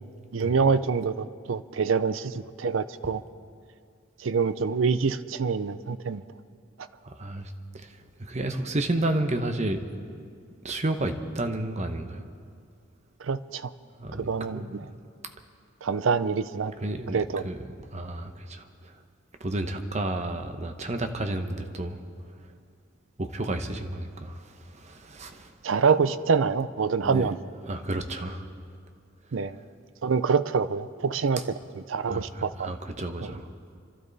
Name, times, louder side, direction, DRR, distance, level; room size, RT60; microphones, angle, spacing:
voice 1, 0.3-3.2 4.2-6.2 13.2-13.7 14.2-14.8 15.8-16.7 17.1-17.4 25.6-27.4 29.3-29.6 30.0-31.5 31.9-32.7 33.2-33.3, right 5 dB, 75° right, 14 dB, 0.5 m, -26 dB
voice 2, 7.0-9.9 10.6-12.2 14.0-14.9 16.8-17.6 17.9-18.9 19.4-22.0 22.4-22.5 23.2-25.5 27.0-27.3 27.6-28.4 31.4-31.5 32.1-33.5, right 1 dB, 35° right, 7 dB, 1.0 m, -32 dB
27.0 x 12.5 x 4.1 m, 2.3 s
head